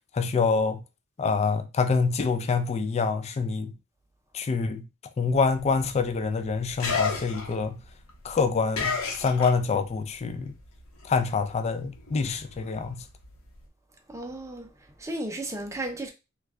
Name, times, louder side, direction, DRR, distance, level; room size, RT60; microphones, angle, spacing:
voice 1, 0.1-0.8 1.2-3.7 4.3-4.9 5.2-7.8 8.2-10.5 11.0-13.0, left 4 dB, 30° left, 0.3 m, -26 dB
sound 1, 5.3-10.0 10.3-13.6, left 5 dB, 75° left, 0.9 m, -34 dB
voice 2, 14.1-14.7 15.0-16.1, right 1 dB, 15° right, 0.6 m, -34 dB
3.1 x 2.4 x 3.5 m
head